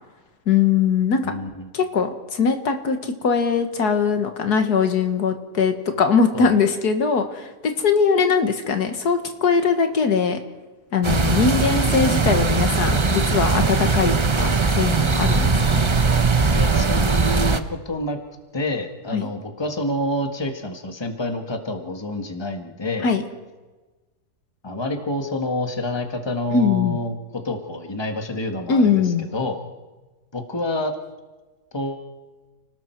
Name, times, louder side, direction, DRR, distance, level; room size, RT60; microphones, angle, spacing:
voice 1, 0.5-1.2 1.7-10.4 10.9-15.8 19.1-19.3 23.0-23.2 26.5-27.0 28.7-29.3, left 5 dB, 75° left, 7 dB, 2.0 m, -21 dB
voice 2, 1.2-1.7 6.3-6.6 16.5-18.2 18.5-23.1 24.6-27.1 27.4-29.6 30.3-30.9 31.7-32.1, left 1 dB, 15° left, 5 dB, 1.6 m, -28 dB
sound 1, 11.0-17.6, right 4 dB, 30° right, 0.6 m, -20 dB
30.0 x 19.0 x 4.6 m, 1.2 s
omnidirectional pair, 1.7 m